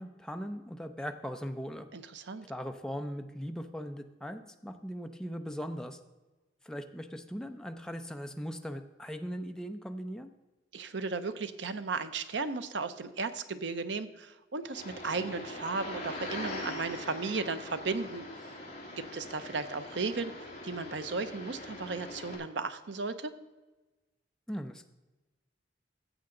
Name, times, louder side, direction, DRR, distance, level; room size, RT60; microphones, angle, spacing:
voice 1, 0.0-1.9 2.4-6.0 6.6-10.3 24.5-24.9, equal, 5° left, 6 dB, 0.6 m, -39 dB
voice 2, 1.9-2.5 10.7-18.2 19.0-23.3, right 4 dB, 75° right, 11 dB, 0.7 m, -35 dB
sound 1, 14.7-22.4, left 2 dB, 35° left, 2.4 m, -42 dB
14.0 x 7.8 x 3.8 m, 1.1 s
head